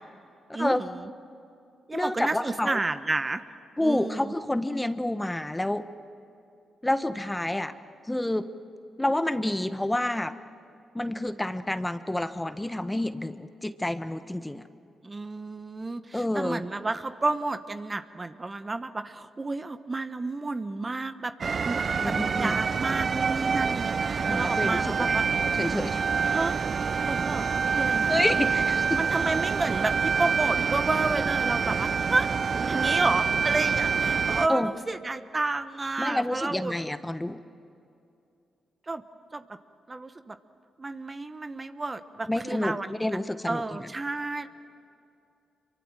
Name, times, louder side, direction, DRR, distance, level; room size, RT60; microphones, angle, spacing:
voice 1, 0.5-1.0 1.9-3.4 3.8-4.3 15.0-25.2 26.3-26.6 27.0-28.1 29.0-32.3 32.6-36.7 38.9-39.0 39.3-39.6 39.9-40.4 40.8-43.2 43.5-44.5, right 3 dB, 30° right, 10 dB, 1.1 m, -31 dB
voice 2, 1.9-2.8 3.8-5.8 6.8-7.7 8.1-8.5 9.0-10.3 10.9-14.6 16.1-16.6 22.0-22.6 24.3-25.2 25.6-26.0 28.1-29.0 34.5-34.7 36.0-37.4 42.3-43.9, left 1 dB, 15° left, 11 dB, 1.2 m, -28 dB
sound 1, 21.4-34.5, right 6 dB, 55° right, 0.5 m, -26 dB
26.0 x 23.5 x 7.6 m, 2.6 s
supercardioid pair, 50°, 0 cm